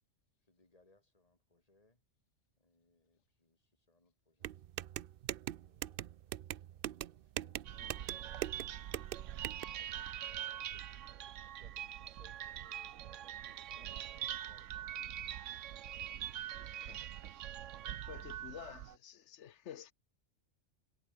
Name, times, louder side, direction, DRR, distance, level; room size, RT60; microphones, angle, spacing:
voice 1, 0.4-2.0 2.6-4.6 5.6-8.4 9.8-15.0 18.5-18.8, left 2 dB, 30° left, 2.8 m, -69 dB
sound 1, 4.4-9.6, right 12 dB, 60° right, 0.6 m, -42 dB
sound 2, 7.6-19.0, right 11 dB, 85° right, 1.1 m, -43 dB
voice 2, 16.6-17.0 17.6-17.7 18.0-19.9, left 10 dB, 70° left, 1.1 m, -51 dB
omnidirectional pair, 1.3 m